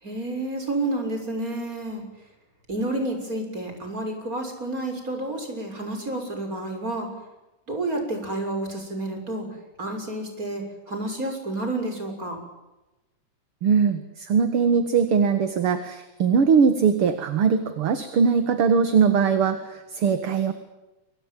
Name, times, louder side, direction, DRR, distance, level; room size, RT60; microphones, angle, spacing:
voice 1, 0.0-2.0 2.7-7.1 7.7-9.5 9.8-12.4, right 2 dB, 25° right, 4 dB, 7.0 m, -30 dB
voice 2, 13.6-20.5, right 6 dB, 50° right, 9 dB, 2.2 m, -21 dB
28.0 x 24.0 x 7.6 m, 1.0 s
omnidirectional pair, 3.6 m